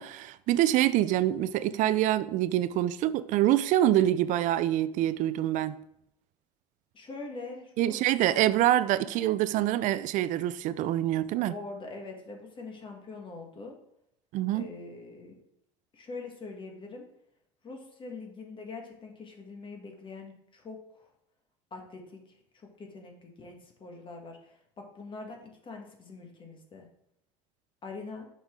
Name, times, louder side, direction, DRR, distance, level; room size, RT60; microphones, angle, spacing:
voice 1, 0.0-5.8 7.8-11.5 14.3-14.7, right 13 dB, 55° right, 0.4 m, -25 dB
voice 2, 6.9-8.0 9.0-9.2 11.4-13.8 14.5-15.3 15.9-17.0 17.6-21.1 21.7-26.9 27.8-28.3, left 3 dB, 35° left, 1.5 m, -43 dB
5.9 x 5.7 x 3.7 m
supercardioid pair, 95°, 15 cm